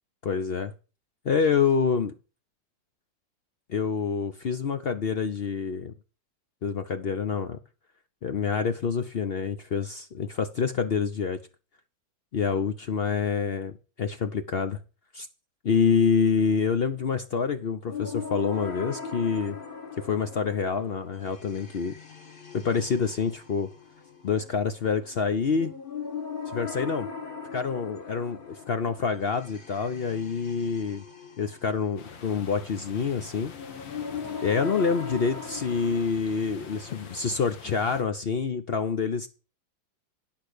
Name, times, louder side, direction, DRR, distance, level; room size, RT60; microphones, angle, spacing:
voice 1, 0.2-0.7 1.2-2.1 3.7-5.9 6.6-7.6 8.2-11.4 12.3-14.8 15.1-15.3 15.6-19.6 20.0-21.9 22.5-23.7 24.2-25.7 26.5-27.1 27.5-31.0 31.4-33.5 34.4-39.3, left 6 dB, 70° left, 0.5 m, -27 dB
sound 1, 17.9-36.1, left 6 dB, 35° left, 1.2 m, -40 dB
sound 2, 32.0-38.0, left 5 dB, 90° left, 2.1 m, -45 dB
10.5 x 5.9 x 6.6 m
omnidirectional pair, 2.0 m